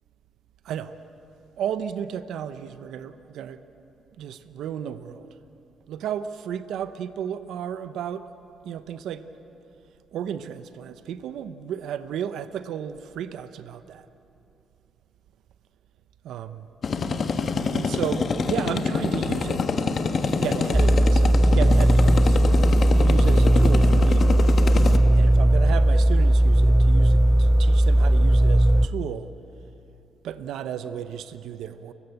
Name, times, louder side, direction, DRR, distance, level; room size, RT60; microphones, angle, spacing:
voice 1, 1.6-3.6 4.2-5.3 5.9-8.3 8.6-9.2 10.1-14.0 16.2-16.7 17.7-19.6 20.3-22.4 22.9-24.4 25.1-29.3 30.2-31.9, right 9 dB, 80° right, 11 dB, 0.9 m, -33 dB
sound 1, 16.8-25.0, left 5 dB, 45° left, 1.4 m, -26 dB
sound 2, 20.7-28.9, right 1 dB, 5° right, 0.6 m, -17 dB
30.0 x 15.5 x 8.1 m, 2.9 s
cardioid pair, 90°, 0 cm